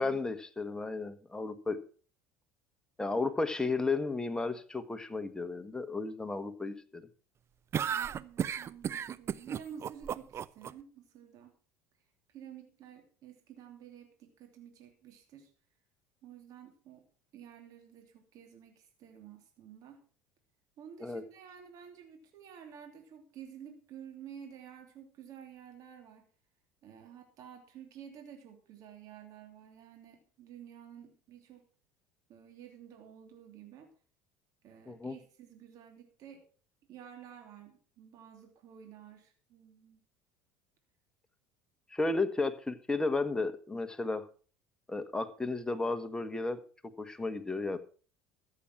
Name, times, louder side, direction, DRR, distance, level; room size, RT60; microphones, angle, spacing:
voice 1, 0.0-1.8 3.0-7.1 21.0-21.2 34.9-35.2 41.9-44.3 44.9-46.6 47.0-47.8, left 3 dB, 10° left, 1.5 m, -33 dB
sound 1, 7.7-10.7, right 8 dB, 40° right, 0.6 m, -33 dB
voice 2, 8.1-11.5 12.3-15.5 16.2-17.1 17.3-20.0 20.8-26.3 26.8-31.6 32.3-33.9 34.6-36.4 36.9-40.0, right 8 dB, 55° right, 2.9 m, -51 dB
14.0 x 7.3 x 6.2 m
hypercardioid pair, 85°, 7 cm